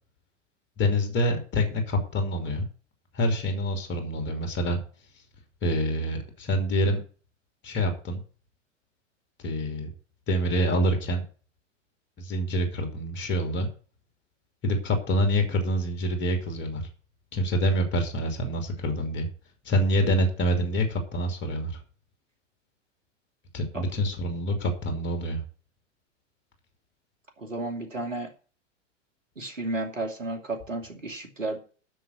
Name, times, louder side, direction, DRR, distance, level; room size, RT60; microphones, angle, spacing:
voice 1, 0.8-2.6 3.1-4.8 5.6-7.0 7.6-8.2 9.4-9.9 10.3-11.2 12.2-13.7 14.6-16.9 17.3-19.3 19.6-21.8 23.5-25.4, equal, 30° left, 5 dB, 3.0 m, -26 dB
voice 2, 27.4-28.3 29.4-31.6, right 2 dB, 80° right, 3 dB, 2.7 m, -32 dB
10.0 x 6.5 x 8.0 m, 0.39 s
figure-of-eight pair, 95°, 37 cm